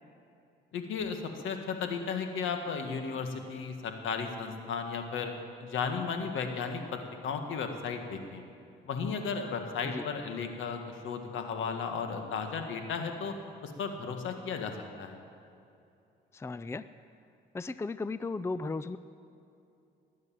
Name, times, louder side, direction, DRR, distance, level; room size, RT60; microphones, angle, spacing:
voice 1, 0.7-5.3 5.6-8.4 8.8-13.3 13.6-15.2, left 5 dB, 80° left, 5 dB, 1.8 m, -35 dB
voice 2, 16.3-16.9 17.5-19.0, left 3 dB, 15° left, 14 dB, 0.4 m, -35 dB
20.0 x 9.5 x 7.6 m, 2.7 s
cardioid pair, 90°, 20 cm